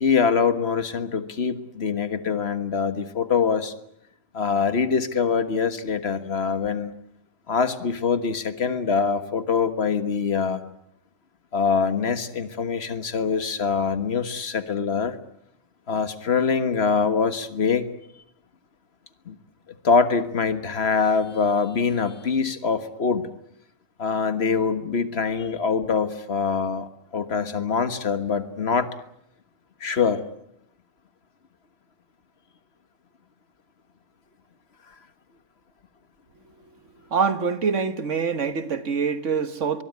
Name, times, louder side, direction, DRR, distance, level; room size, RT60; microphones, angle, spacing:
voice 1, 0.0-3.7 4.3-6.9 7.5-10.6 11.5-15.2 15.9-17.9 19.3-19.4 19.8-23.3 24.0-28.9 29.8-30.2, left 5 dB, 60° left, 1.7 m, -24 dB
voice 2, 37.1-39.8, right 5 dB, 80° right, 1.8 m, -25 dB
23.5 x 21.0 x 9.6 m
omnidirectional pair, 1.2 m